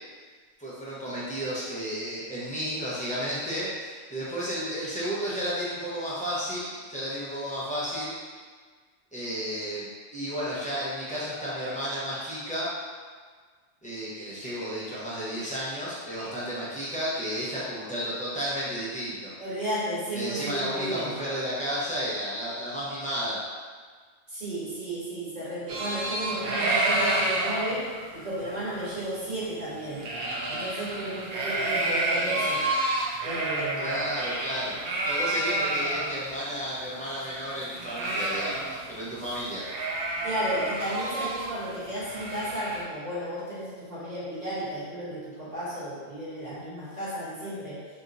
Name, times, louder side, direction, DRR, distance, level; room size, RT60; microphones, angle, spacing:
voice 1, 0.6-8.1 9.1-12.7 13.8-19.3 20.1-23.4 33.8-34.8 35.0-39.7, equal, 10° left, -9 dB, 0.7 m, -32 dB
voice 2, 19.4-21.1 24.3-30.0 30.5-32.7 33.2-34.0 40.2-47.9, right 1 dB, 35° right, -10 dB, 1.2 m, -33 dB
sound 1, 25.7-36.1 36.5-36.6 36.8-39.0 39.2-39.4 39.6-42.8, right 2 dB, 65° right, 0.7 m, -29 dB
2.8 x 2.6 x 3.8 m, 1.5 s
omnidirectional pair, 1.1 m